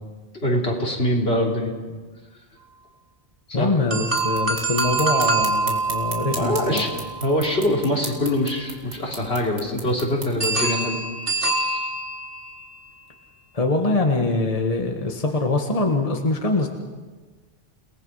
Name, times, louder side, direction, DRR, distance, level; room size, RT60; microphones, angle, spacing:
voice 1, 0.4-1.7 3.5-3.7 6.4-11.0 11.3-11.9, left 1 dB, 70° left, -1 dB, 3.7 m, -24 dB
voice 2, 3.5-6.8 13.5-16.7, left 2 dB, 35° left, 2 dB, 1.7 m, -23 dB
sound 1, 3.9-8.0 10.4-12.7, right 3 dB, 55° right, 2.1 m, -25 dB
sound 2, 4.1-10.5, right 2 dB, 75° right, 2.9 m, -37 dB
29.5 x 19.0 x 5.7 m, 1.4 s
omnidirectional pair, 1.1 m